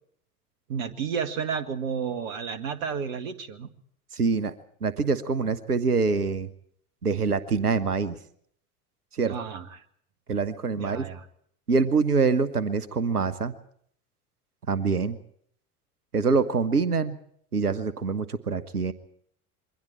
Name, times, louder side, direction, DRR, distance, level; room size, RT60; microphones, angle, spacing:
voice 1, 0.7-3.7 9.3-9.8 10.8-11.3, right 6 dB, 60° right, 11 dB, 2.1 m, -32 dB
voice 2, 4.1-4.5 4.8-6.5 7.0-8.2 9.2-9.3 10.3-11.1 11.7-13.5 14.7-15.2 16.1-17.2 17.5-18.9, right 4 dB, 80° right, 14 dB, 1.3 m, -25 dB
26.5 x 22.5 x 4.4 m, 0.64 s
figure-of-eight pair, 75°, 45 cm